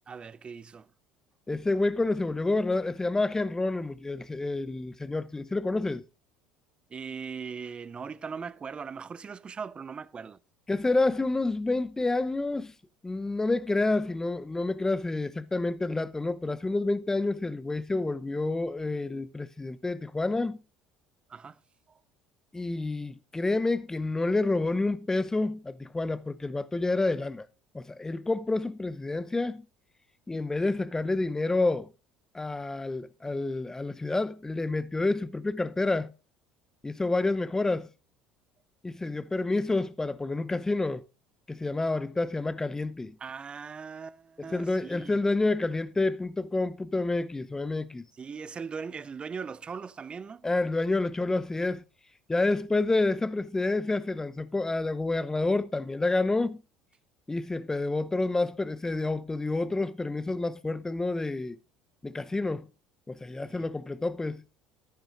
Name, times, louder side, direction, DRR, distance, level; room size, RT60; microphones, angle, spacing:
voice 1, 0.1-0.9 6.9-10.4 21.3-21.6 43.2-45.2 48.2-50.4 63.4-63.7, right 6 dB, 30° right, 0.5 m, -39 dB
voice 2, 1.5-6.0 10.7-12.7 13.0-20.6 22.5-27.5 27.7-29.6 30.3-31.9 32.3-36.1 36.8-37.9 38.8-41.0 41.5-43.2 44.4-48.0 50.4-51.8 52.3-56.6 57.3-61.6 62.0-62.7 63.1-64.4, left 2 dB, 15° left, 0.7 m, -29 dB
13.0 x 10.5 x 2.5 m
hypercardioid pair, 65°, 4 cm